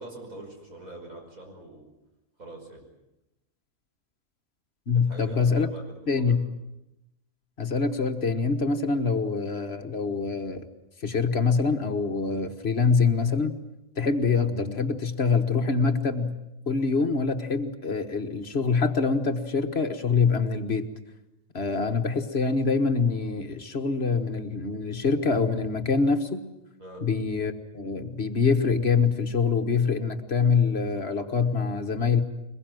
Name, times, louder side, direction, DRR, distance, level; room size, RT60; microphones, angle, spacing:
voice 1, 0.0-1.9 2.4-2.8 5.0-5.8 6.1-6.3 26.8-27.0, right 2 dB, 80° right, 1 dB, 6.2 m, -43 dB
voice 2, 4.9-5.7 6.1-6.4 7.6-10.7 11.0-13.5 14.0-16.3 16.7-20.9 21.5-26.4 27.0-32.2, left 4 dB, 50° left, 7 dB, 1.6 m, -25 dB
23.0 x 21.0 x 9.2 m, 0.92 s
omnidirectional pair, 1.4 m